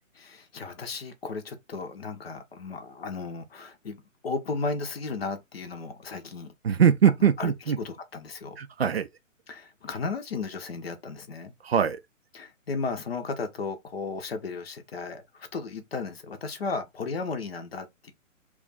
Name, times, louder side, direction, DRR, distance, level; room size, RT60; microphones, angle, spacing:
voice 1, 0.2-6.5 7.2-7.5 7.8-8.6 9.5-11.5 12.3-18.1, left 4 dB, 50° left, 0.7 m, -35 dB
voice 2, 6.6-7.8 8.6-9.1 11.6-12.0, right 8 dB, 50° right, 0.4 m, -22 dB
2.4 x 2.3 x 3.8 m
figure-of-eight pair, 135°, 40 cm